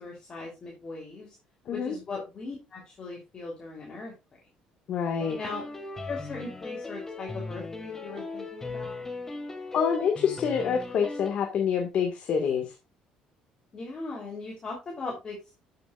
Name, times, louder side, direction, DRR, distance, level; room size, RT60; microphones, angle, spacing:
voice 1, 0.0-1.4 1.7-4.1 5.4-5.6 6.1-9.0 13.7-15.5, left 3 dB, 35° left, -1 dB, 3.2 m, -39 dB
voice 2, 4.9-5.4 9.7-12.7, left 7 dB, 55° left, 3 dB, 1.7 m, -27 dB
sound 1, 5.2-11.3, left 3 dB, 15° left, 1.8 m, -38 dB
12.5 x 7.7 x 2.4 m, 0.25 s
cardioid pair, 115°, 2 cm